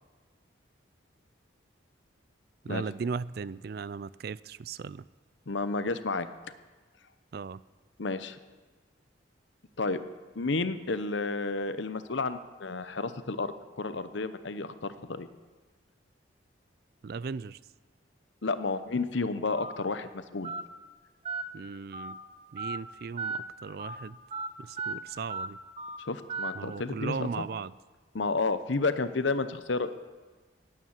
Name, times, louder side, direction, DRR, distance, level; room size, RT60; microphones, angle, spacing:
voice 1, 2.6-5.0 7.3-7.6 17.0-17.6 21.5-22.2 22.5-24.2 24.6-25.6 26.5-27.7, right 5 dB, 50° right, 19 dB, 0.3 m, -37 dB
voice 2, 5.5-6.3 8.0-8.4 9.8-10.0 10.4-15.3 18.4-20.5 26.1-27.5 28.1-29.9, left 3 dB, 70° left, 12 dB, 0.8 m, -31 dB
Telephone, 19.6-19.7 20.4-20.6 21.2-21.4 21.9-22.1 22.6-22.8 23.2-23.4 23.8-24.0 24.3-24.5 24.8-24.9 25.3-25.5 25.8-26.0 26.3-26.5, right 4 dB, 30° right, 1.0 m, -35 dB
18.0 x 9.1 x 7.3 m, 1.3 s
head